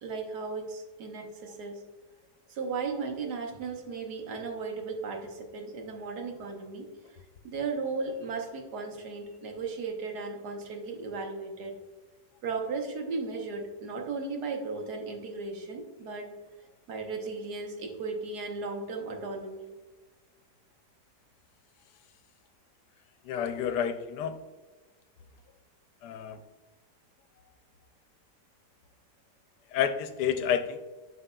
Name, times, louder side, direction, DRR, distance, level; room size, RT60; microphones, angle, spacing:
voice 1, 0.0-1.8 2.5-6.9 7.4-11.8 12.4-16.3 16.9-19.7, right 4 dB, 70° right, 3 dB, 1.5 m, -36 dB
voice 2, 23.2-24.4 26.0-26.4 29.7-30.8, left 8 dB, 75° left, 9 dB, 1.1 m, -29 dB
7.4 x 5.7 x 2.2 m, 1.3 s
omnidirectional pair, 1.8 m